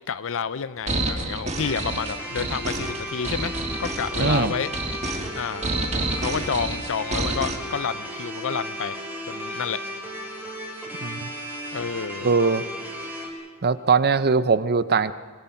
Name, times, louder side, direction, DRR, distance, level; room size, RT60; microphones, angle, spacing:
voice 1, 0.1-4.7 5.3-9.8 11.7-12.3, left 6 dB, 65° left, 14 dB, 0.6 m, -30 dB
sound 1, 0.9-7.6, right 2 dB, 30° right, 1.8 m, -29 dB
sound 2, 1.6-13.3, equal, 10° right, 3.4 m, -35 dB
voice 2, 4.2-4.5 11.0-11.3 12.2-12.6 13.6-15.1, right 5 dB, 45° right, 14 dB, 0.7 m, -21 dB
24.5 x 20.0 x 5.8 m, 1.5 s
head